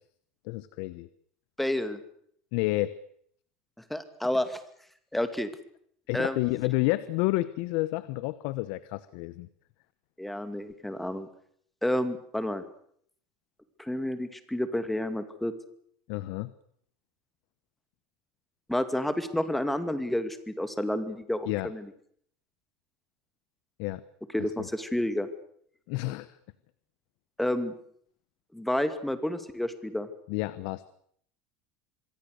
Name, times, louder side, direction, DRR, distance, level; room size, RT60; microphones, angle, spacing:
voice 1, 0.4-1.1 2.5-2.9 6.1-9.5 16.1-16.5 21.5-21.7 23.8-24.0 24.6-24.7 25.9-26.3 30.3-30.9, left 19 dB, 65° left, 16 dB, 1.1 m, -30 dB
voice 2, 1.6-2.0 3.9-4.6 5.1-5.5 6.1-6.4 10.2-11.3 11.8-12.6 13.8-15.5 18.7-21.9 24.3-25.3 27.4-27.7 28.5-30.1, left 1 dB, 5° left, 10 dB, 2.4 m, -30 dB
26.5 x 22.0 x 6.6 m, 0.65 s
supercardioid pair, 145°, 4 cm